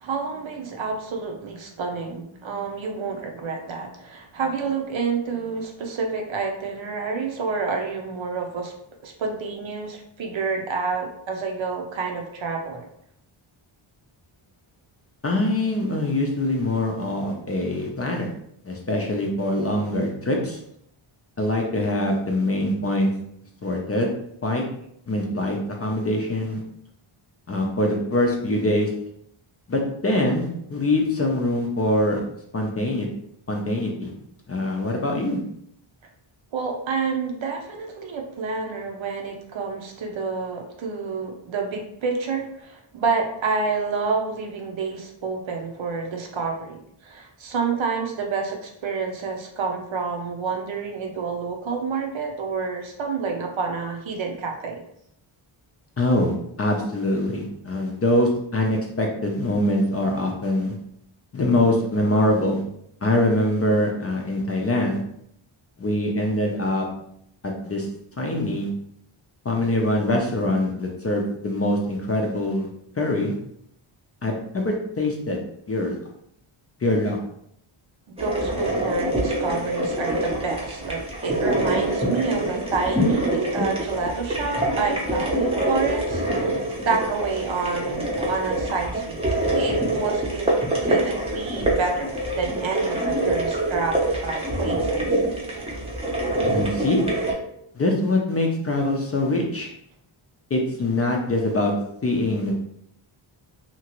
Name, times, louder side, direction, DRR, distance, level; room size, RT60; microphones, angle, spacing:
voice 1, 0.0-8.7 9.0-12.9 36.5-54.8 78.1-89.2 89.5-90.6 90.9-95.2, right 4 dB, 65° right, 2 dB, 0.7 m, -28 dB
voice 2, 15.2-18.3 18.6-20.6 21.4-23.1 23.6-24.1 24.4-24.6 25.1-26.6 27.5-28.9 29.7-32.2 32.5-33.1 33.5-34.1 34.5-35.4 56.0-60.7 61.3-62.6 63.0-65.0 65.8-66.9 67.4-67.9 68.2-68.7 69.4-72.7 73.0-73.4 74.2-75.4 75.7-76.0 76.8-77.2 96.5-97.0 97.7-99.7 100.5-101.7 102.0-102.6, left 1 dB, 30° left, 0 dB, 0.4 m, -23 dB
sound 1, 78.2-97.3, right 1 dB, 10° right, 0.6 m, -25 dB
2.9 x 2.4 x 2.9 m, 0.72 s
wide cardioid pair, 120°, 50 cm